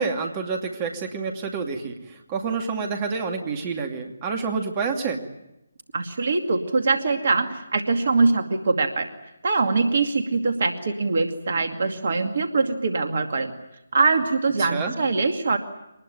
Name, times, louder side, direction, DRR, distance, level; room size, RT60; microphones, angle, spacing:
voice 1, 0.0-5.2 14.6-14.9, right 5 dB, 25° right, 4 dB, 2.4 m, -28 dB
voice 2, 5.9-9.1 9.4-13.5 13.9-15.6, right 3 dB, 50° right, 6 dB, 2.3 m, -23 dB
25.0 x 20.0 x 9.1 m, 0.90 s
figure-of-eight pair, 145°, 0 cm